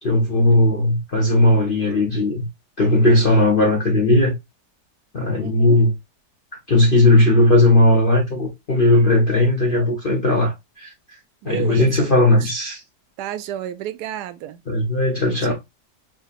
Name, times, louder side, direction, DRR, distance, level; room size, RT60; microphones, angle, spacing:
voice 1, 0.0-2.5 2.8-4.3 5.1-5.9 6.7-10.9 11.4-12.8 14.7-15.5, left 1 dB, 40° left, 0.8 m, -17 dB
voice 2, 5.4-5.8 11.4-12.5 13.2-14.6 15.5-15.6, right 12 dB, 75° right, 1.1 m, -32 dB
6.1 x 2.8 x 2.4 m
omnidirectional pair, 1.8 m